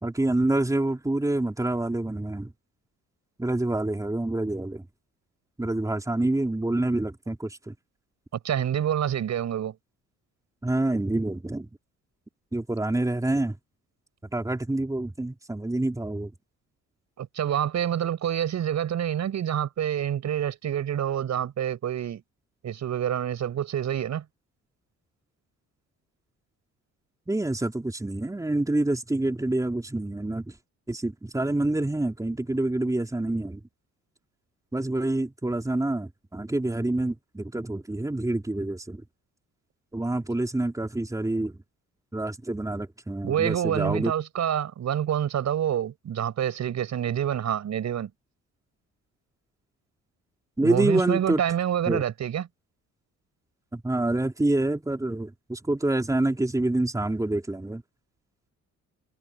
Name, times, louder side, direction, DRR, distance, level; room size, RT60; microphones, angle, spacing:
voice 1, 0.0-2.5 3.4-4.9 5.6-7.7 10.6-11.7 12.5-13.6 14.3-16.3 27.3-30.5 30.9-33.6 34.7-39.0 39.9-41.5 42.1-44.1 50.6-51.4 51.9-52.0 53.7-57.8, right 2 dB, 10° right, 3.8 m, -27 dB
voice 2, 8.4-9.7 17.2-22.2 22.6-24.2 43.2-48.1 50.6-52.5, right 10 dB, 65° right, 6.4 m, -27 dB
cardioid pair, 90°, 30 cm